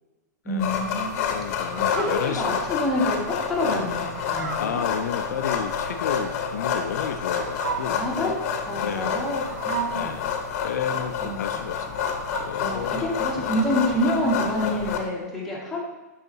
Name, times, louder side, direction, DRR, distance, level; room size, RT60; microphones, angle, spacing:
voice 1, 0.4-1.1 1.9-4.8 7.9-8.4 8.7-10.1 11.2-11.4 12.6-15.8, left 1 dB, ahead, -7 dB, 1.9 m, -27 dB
sound 1, 0.6-15.0, left 7 dB, 50° left, 1.0 m, -29 dB
voice 2, 1.3-2.5 3.6-3.9 4.6-8.3 8.7-9.3 9.9-13.0, left 7 dB, 70° left, 7 dB, 0.5 m, -32 dB
Fowl, 1.6-12.7, right 7 dB, 80° right, 0.8 m, -37 dB
6.8 x 5.6 x 2.8 m, 1.2 s
hypercardioid pair, 125°, 9 cm